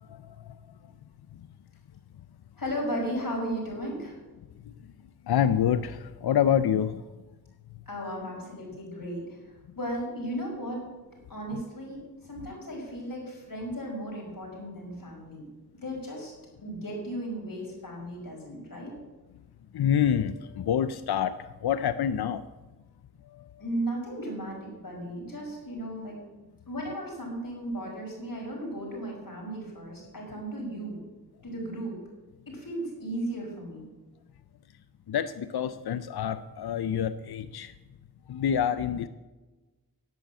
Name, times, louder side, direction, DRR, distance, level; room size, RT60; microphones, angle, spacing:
voice 1, 2.6-4.2 7.9-10.9 11.3-15.4 15.8-16.3 16.6-18.9 23.6-26.2 26.7-31.0 31.4-32.0 32.5-33.9, right 1 dB, 65° left, -2 dB, 5.7 m, -35 dB
voice 2, 5.3-7.0 11.5-11.6 19.7-22.4 23.3-23.4 35.1-37.7 38.3-39.1, left 9 dB, 80° left, 13 dB, 0.5 m, -27 dB
11.5 x 8.5 x 8.1 m, 1.2 s
wide cardioid pair, 75°, 37 cm